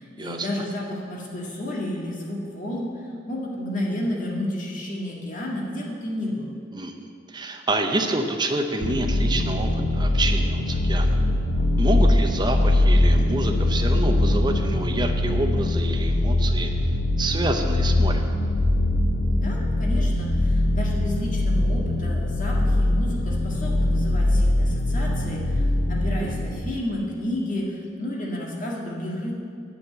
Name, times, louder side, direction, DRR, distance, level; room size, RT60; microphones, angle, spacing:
voice 1, 0.0-6.5 19.3-29.3, left 1 dB, 45° left, -3 dB, 1.8 m, -31 dB
voice 2, 7.3-11.1 11.8-16.7 17.2-18.3, right 2 dB, 25° right, 4 dB, 0.7 m, -27 dB
sound 1, 8.8-26.6, left 1 dB, 75° left, 0.9 m, -22 dB
8.3 x 7.0 x 7.4 m, 2.4 s
head